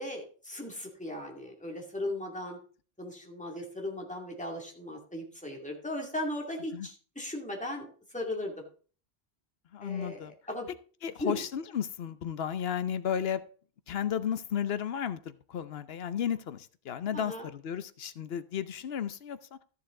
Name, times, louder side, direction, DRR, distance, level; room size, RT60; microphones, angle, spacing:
voice 1, 0.0-2.6 3.0-8.6 9.8-10.7 11.2-11.4 17.1-17.5, left 1 dB, 5° left, 1 dB, 2.3 m, -37 dB
voice 2, 9.7-10.3 11.0-13.4 13.9-19.6, left 8 dB, 65° left, 13 dB, 0.9 m, -33 dB
14.0 x 7.0 x 3.8 m, 0.40 s
omnidirectional pair, 1.1 m